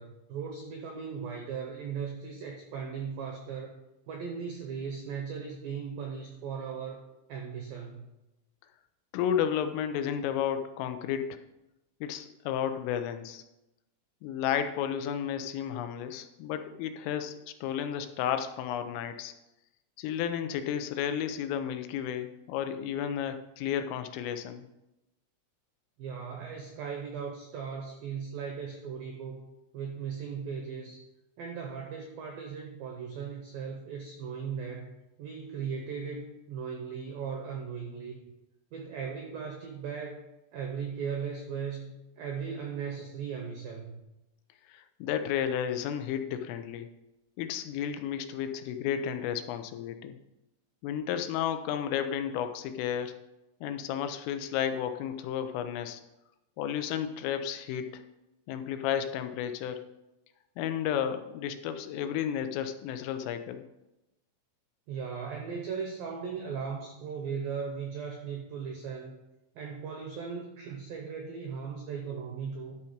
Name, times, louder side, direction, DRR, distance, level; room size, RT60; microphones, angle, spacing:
voice 1, 0.0-3.8 4.1-7.0 7.3-8.1 26.0-29.5 29.7-31.0 31.4-38.2 38.7-40.3 40.5-44.0 64.9-69.2 69.6-72.8, right 6 dB, 85° right, 2 dB, 2.1 m, -38 dB
voice 2, 9.1-11.4 12.0-13.4 14.2-19.3 20.0-24.7 44.7-46.9 47.4-50.2 50.8-53.1 53.6-56.0 56.6-58.0 58.5-59.9 60.6-63.6, left 9 dB, 90° left, 8 dB, 3.4 m, -32 dB
12.0 x 5.6 x 5.1 m, 0.93 s
omnidirectional pair, 5.7 m